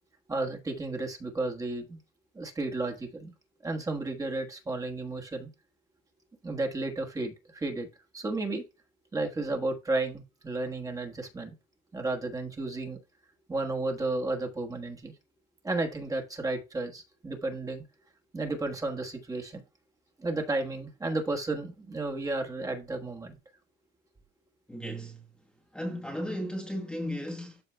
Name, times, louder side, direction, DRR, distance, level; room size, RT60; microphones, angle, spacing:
voice 1, 0.3-2.0 2.3-3.3 3.6-5.5 6.4-7.9 8.1-8.6 9.1-11.5 11.9-13.0 13.5-15.1 15.6-17.8 18.3-19.6 20.2-23.4, right 2 dB, 15° right, 1.4 m, -33 dB
voice 2, 24.7-25.2 25.7-27.6, equal, 5° left, 1.2 m, -35 dB
12.5 x 4.8 x 2.2 m
cardioid pair, 130°, 21 cm